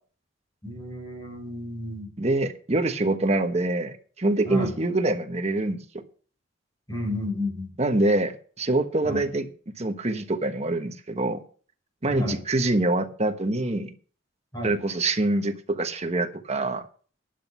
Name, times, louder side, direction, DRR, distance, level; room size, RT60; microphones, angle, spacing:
voice 1, 0.6-2.1 4.5-4.7 6.9-7.7 9.0-9.2 12.1-12.3 14.5-14.7, left 1 dB, 20° left, 4.5 m, -31 dB
voice 2, 2.2-5.8 7.8-11.4 12.0-13.9 14.6-16.9, right 2 dB, 35° right, 1.2 m, -25 dB
11.5 x 8.0 x 5.6 m
head